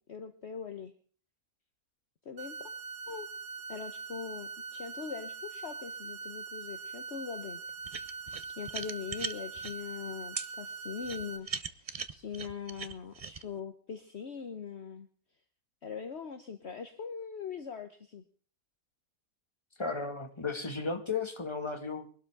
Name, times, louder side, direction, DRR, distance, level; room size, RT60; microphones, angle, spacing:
voice 1, 0.1-0.9 2.2-2.6 3.1-3.3 3.7-7.6 8.6-15.1 15.8-18.2, left 6 dB, 50° left, 7 dB, 1.3 m, -41 dB
sound 1, 2.4-11.4, right 4 dB, 85° right, 2.2 m, -42 dB
sound 2, 7.8-9.7 10.4-10.5 11.0-13.4, right 5 dB, 35° right, 0.6 m, -39 dB
voice 2, 19.8-22.1, left 4 dB, 20° left, 4 dB, 2.0 m, -34 dB
23.0 x 12.5 x 3.6 m, 0.43 s
omnidirectional pair, 1.5 m